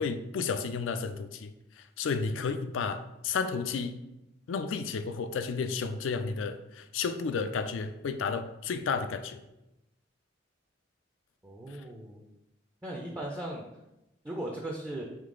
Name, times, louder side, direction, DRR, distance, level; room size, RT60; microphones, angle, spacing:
voice 1, 0.0-1.5 2.0-4.0 4.5-9.4, left 5 dB, 90° left, 10 dB, 0.4 m, -32 dB
voice 2, 11.4-12.2 12.8-13.7 14.2-15.0, right 1 dB, 10° right, -1 dB, 0.4 m, -37 dB
3.7 x 3.2 x 3.7 m, 0.92 s
head